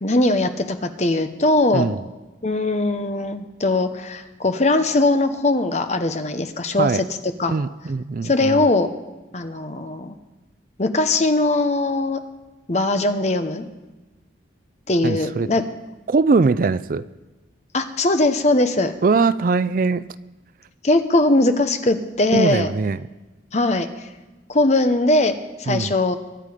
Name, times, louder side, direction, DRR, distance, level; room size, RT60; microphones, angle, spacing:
voice 1, 0.0-2.0 2.4-6.9 7.4-7.5 8.2-8.9 9.3-10.2 10.8-12.2 12.7-13.6 14.9-15.6 17.7-18.9 20.8-22.7 23.5-24.1 24.5-26.2, left 2 dB, 35° left, 8 dB, 0.9 m, -20 dB
voice 2, 7.5-8.6 15.0-15.5 16.1-17.0 19.0-20.1 22.3-23.0 25.7-25.9, right 4 dB, 45° right, 15 dB, 0.4 m, -21 dB
22.5 x 9.0 x 5.1 m, 1.2 s
head